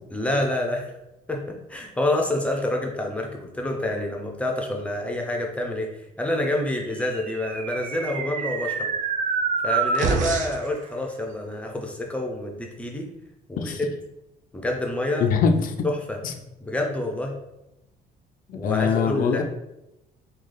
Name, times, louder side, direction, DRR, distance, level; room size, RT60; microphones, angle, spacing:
voice 1, 0.1-0.9 1.3-8.9 9.6-13.1 13.5-13.9 14.5-15.3 15.8-16.2 16.6-17.3 18.5-19.4, left 1 dB, 5° left, 1 dB, 0.6 m, -27 dB
sound 1, 7.1-10.7, right 5 dB, 50° right, 0.5 m, -27 dB
voice 2, 15.2-15.7 16.2-16.3 18.5-19.4, left 6 dB, 55° left, 5 dB, 0.5 m, -22 dB
3.2 x 2.4 x 3.8 m, 0.89 s
cardioid pair, 110°, 17 cm